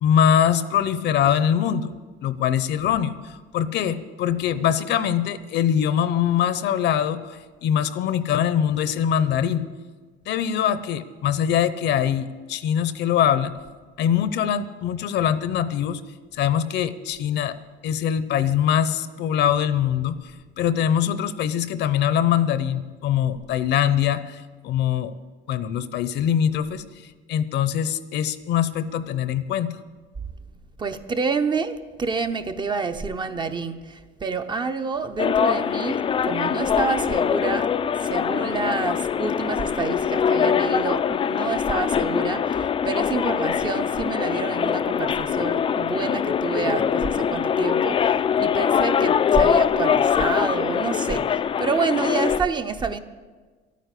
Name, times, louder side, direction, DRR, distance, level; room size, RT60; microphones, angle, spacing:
voice 1, 0.0-1.9 2.2-9.7 10.3-13.5 14.0-16.0 16.3-17.6 17.8-25.1 25.5-26.8 27.3-29.8, left 9 dB, 60° left, 14 dB, 0.8 m, -23 dB
voice 2, 30.8-37.7 38.0-53.0, right 4 dB, 20° right, 8 dB, 0.7 m, -28 dB
sound 1, 35.2-52.4, left 7 dB, 25° left, 0.4 m, -23 dB
12.0 x 9.4 x 8.3 m, 1.4 s
cardioid pair, 125°, 20 cm